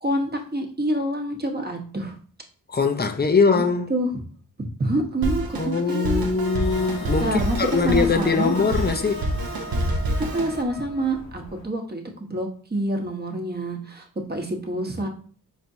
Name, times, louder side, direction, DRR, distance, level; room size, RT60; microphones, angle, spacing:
voice 1, 0.0-2.2 3.5-3.6 3.9-4.2 4.8-6.3 7.2-7.6 7.8-8.5 10.2-15.1, right 1 dB, 25° right, 1.1 m, -27 dB
voice 2, 2.7-3.9 5.6-9.3, left 4 dB, 25° left, 0.7 m, -22 dB
Drum kit, 5.2-10.6, right 1 dB, 60° right, 0.9 m, -28 dB
Wind instrument woodwind instrument, 6.5-11.1, right 1 dB, 90° left, 1.6 m, -40 dB
sound 1, 6.6-11.7, left 2 dB, 40° left, 1.1 m, -40 dB
4.5 x 3.3 x 2.7 m
supercardioid pair, 45°, 40 cm